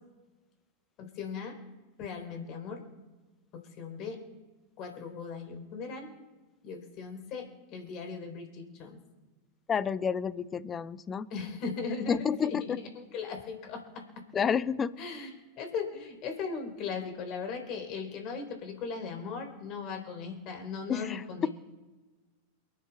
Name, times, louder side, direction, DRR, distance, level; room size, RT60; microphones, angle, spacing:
voice 1, 1.0-1.6 2.0-2.8 3.5-4.2 4.8-6.2 6.6-9.0 11.3-14.0 15.0-15.3 15.6-21.5, left 5 dB, 40° left, 3 dB, 4.1 m, -38 dB
voice 2, 9.7-11.3 12.1-12.8 14.3-14.9 20.9-21.5, left 7 dB, 20° left, 18 dB, 0.5 m, -30 dB
29.0 x 10.0 x 2.4 m, 1.3 s
figure-of-eight pair, 90°, 0 cm